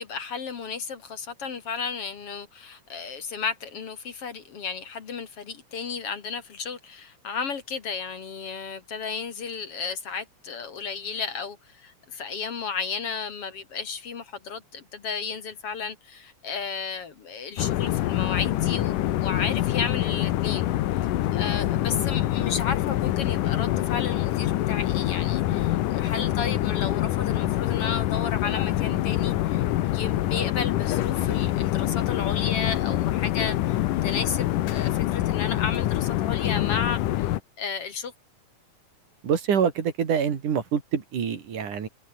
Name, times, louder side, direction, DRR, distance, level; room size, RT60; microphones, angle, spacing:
voice 1, 0.0-18.9 19.2-20.7 21.3-29.7 29.9-38.1, left 6 dB, 50° left, 2.6 m, -33 dB
sound 1, 17.6-37.4, left 14 dB, 80° left, 2.6 m, -25 dB
voice 2, 39.2-41.9, right 7 dB, 75° right, 4.3 m, -25 dB
omnidirectional pair, 3.7 m